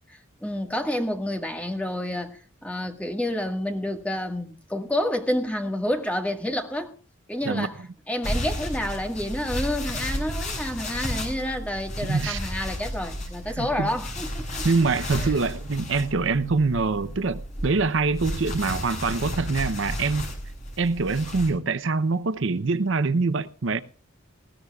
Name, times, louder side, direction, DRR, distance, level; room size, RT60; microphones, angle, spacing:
voice 1, 0.1-7.0 7.3-14.7 15.2-15.4, left 1 dB, 5° left, 1.6 m, -29 dB
sound 1, 8.2-21.5, left 1 dB, 35° left, 5.2 m, -33 dB
voice 2, 12.1-12.4 13.6-13.9 14.6-20.3 20.8-23.8, right 4 dB, 70° right, 0.7 m, -24 dB
20.0 x 16.0 x 2.4 m
head